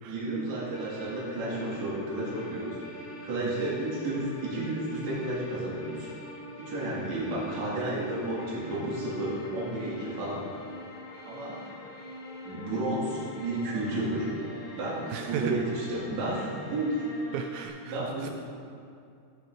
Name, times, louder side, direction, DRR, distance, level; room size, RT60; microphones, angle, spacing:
voice 1, 0.0-6.1 6.6-10.5 11.3-11.6 12.4-14.3 14.7-17.0 17.9-18.3, right 1 dB, 50° right, -7 dB, 3.7 m, -32 dB
sound 1, 0.7-17.7, left 1 dB, 55° left, 2.6 m, -44 dB
voice 2, 3.4-3.7 15.1-15.6 17.3-18.3, right 9 dB, 85° right, 5 dB, 2.0 m, -35 dB
16.0 x 9.5 x 3.8 m, 2.4 s
omnidirectional pair, 4.6 m